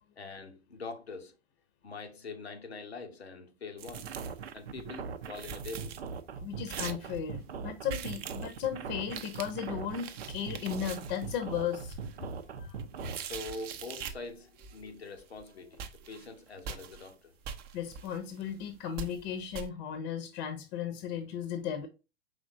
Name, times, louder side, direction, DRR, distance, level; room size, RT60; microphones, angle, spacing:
voice 1, 0.2-1.4 1.8-4.2 4.5-6.0 13.2-17.3, left 3 dB, 85° left, 0.8 m, -44 dB
sound 1, 3.8-4.5 4.8-4.9 5.1-6.2 6.7-7.2 7.8-8.7 9.0-14.3 14.6-14.9 15.2-15.5 15.7-17.1 17.4-18.6 19.0-19.3 19.5-19.7, right 7 dB, 30° right, 0.5 m, -43 dB
sound 2, 3.9-13.2, right 5 dB, 80° right, 0.5 m, -40 dB
voice 2, 6.4-12.0 12.5-12.8 17.7-21.9, left 9 dB, 45° left, 0.6 m, -36 dB
5.0 x 3.3 x 2.5 m
figure-of-eight pair, 90°, 31 cm